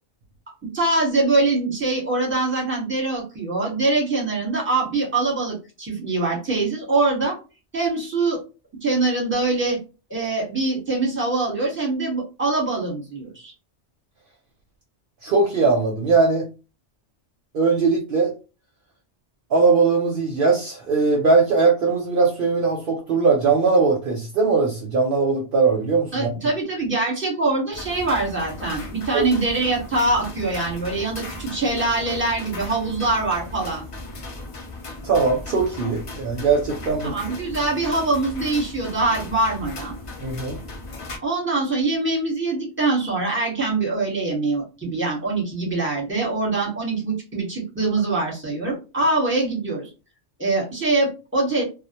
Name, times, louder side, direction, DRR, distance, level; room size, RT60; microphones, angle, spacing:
voice 1, 0.6-7.4 7.7-8.4 8.8-9.8 10.1-13.5 26.1-33.8 37.0-39.9 41.2-49.9 50.4-51.6, right 3 dB, 10° right, -3 dB, 0.9 m, -23 dB
voice 2, 15.2-16.5 17.5-18.3 19.5-26.3 29.1-29.2 35.0-37.1 40.2-40.6, right 4 dB, 60° right, 0 dB, 0.7 m, -20 dB
sound 1, 27.7-41.2, left 2 dB, 50° left, 0.4 m, -37 dB
2.1 x 2.1 x 2.7 m, 0.31 s
omnidirectional pair, 1.2 m